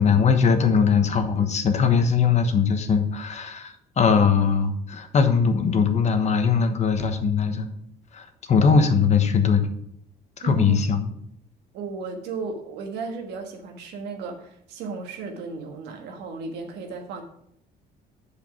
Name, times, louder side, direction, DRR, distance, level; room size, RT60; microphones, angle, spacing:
voice 1, 0.0-7.7 8.1-9.7 10.4-11.1, left 6 dB, 40° left, 7 dB, 1.1 m, -20 dB
voice 2, 10.4-11.0 11.7-17.2, right 4 dB, 90° right, 4 dB, 1.5 m, -34 dB
7.4 x 5.1 x 5.9 m, 0.71 s
cardioid pair, 110°, 17 cm